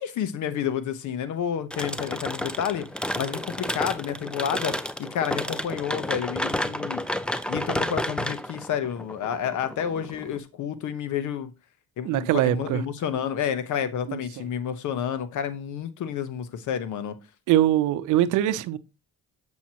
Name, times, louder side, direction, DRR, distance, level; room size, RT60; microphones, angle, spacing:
voice 1, 0.0-2.9 3.2-7.0 7.5-11.5 12.0-17.2, left 9 dB, 75° left, 1.0 m, -30 dB
sound 1, 1.7-10.4, left 1 dB, 5° left, 0.5 m, -31 dB
voice 2, 12.0-12.8 14.1-14.2 17.5-18.8, right 13 dB, 90° right, 0.6 m, -22 dB
7.4 x 6.2 x 2.8 m
cardioid pair, 90°, 30 cm